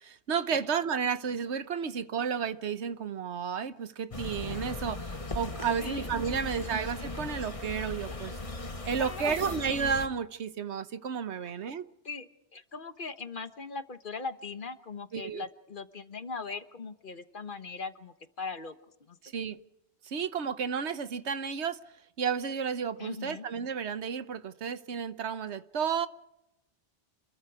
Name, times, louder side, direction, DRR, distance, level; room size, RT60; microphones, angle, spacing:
voice 1, 0.0-8.4 8.9-11.8 15.1-15.4 19.2-19.6 20.0-21.8 22.2-26.1, right 6 dB, 80° right, 1.3 m, -32 dB
sound 1, 4.1-10.1, left 2 dB, 30° left, 1.4 m, -38 dB
voice 2, 5.8-6.1 6.4-6.5 8.1-8.3 9.0-9.7 11.4-11.8 12.0-18.7 19.1-19.2 23.0-23.5, left 4 dB, 50° left, 1.3 m, -40 dB
27.5 x 21.5 x 4.9 m
omnidirectional pair, 1.1 m